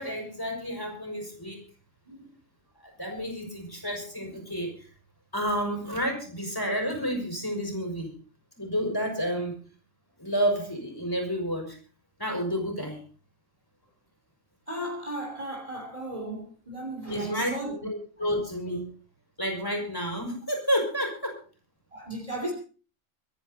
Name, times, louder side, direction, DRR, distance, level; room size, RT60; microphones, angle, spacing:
voice 1, 0.0-1.6 2.8-4.9 5.3-8.1 8.6-9.6 10.2-11.8 12.2-13.0 17.1-17.5 17.8-18.9 19.4-21.4, equal, 15° left, 5.9 m, -30 dB
voice 2, 14.7-17.7 18.2-18.3 21.9-22.5, right 1 dB, 30° right, 3.1 m, -35 dB
25.0 x 10.5 x 4.1 m
omnidirectional pair, 1.3 m